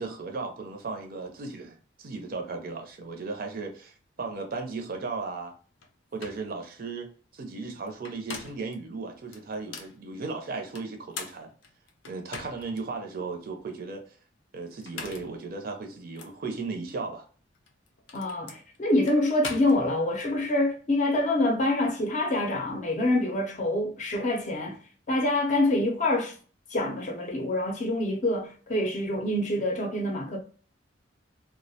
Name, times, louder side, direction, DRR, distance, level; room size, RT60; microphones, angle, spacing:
voice 1, 0.0-5.5 6.1-11.5 12.1-14.0 14.5-17.2, right 4 dB, 50° right, 0.5 m, -36 dB
sound 1, 5.8-5.9 6.2-6.5 7.9-8.7 9.3-10.0 10.7-12.8 13.3-13.4 14.7-15.4 16.2-16.3 17.5-20.3, left 5 dB, 85° left, 0.5 m, -41 dB
voice 2, 18.1-24.8 25.1-26.4 26.7-30.4, left 1 dB, 40° left, 0.5 m, -26 dB
2.3 x 2.1 x 2.7 m
head